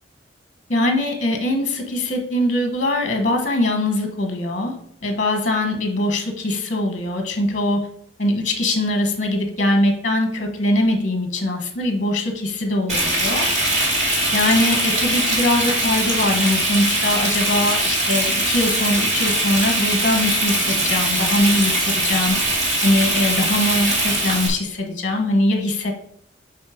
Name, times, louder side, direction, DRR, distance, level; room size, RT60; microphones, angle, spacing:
voice 1, 0.7-4.8 5.0-7.9 8.2-13.5 14.3-22.4 22.8-25.9, left 1 dB, 45° left, 4 dB, 1.1 m, -22 dB
Frying (food), 12.9-24.5, right 1 dB, 40° right, 2.2 m, -21 dB
8.2 x 3.1 x 5.0 m, 0.68 s
head